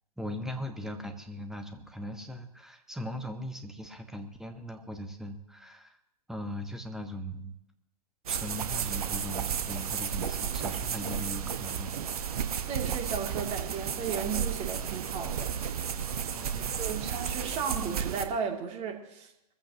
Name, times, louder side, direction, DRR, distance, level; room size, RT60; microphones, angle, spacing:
voice 1, 0.2-6.0 6.3-7.5 8.3-11.9 16.3-16.7, equal, ahead, 6 dB, 1.3 m, -39 dB
sound 1, 8.3-18.2, right 8 dB, 60° right, 1.3 m, -33 dB
voice 2, 12.7-15.5 16.8-19.3, right 6 dB, 30° right, 2 dB, 2.6 m, -35 dB
22.0 x 14.5 x 2.9 m, 0.81 s
figure-of-eight pair, 110°, 21 cm